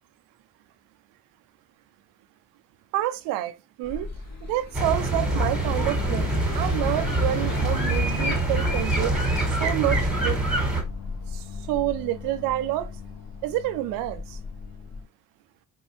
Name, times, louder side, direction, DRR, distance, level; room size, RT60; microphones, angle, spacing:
voice 1, 2.9-4.1 4.5-9.1 9.5-10.4 11.3-12.9 13.4-14.4, right 14 dB, 50° right, 0.5 m, -28 dB
Car passing by / Accelerating revving vroom, 3.8-15.1, left 4 dB, 35° left, 1.1 m, -37 dB
sound 1, 4.7-10.8, right 1 dB, ahead, 1.7 m, -25 dB
5.3 x 2.4 x 3.0 m
figure-of-eight pair, 50°, 45 cm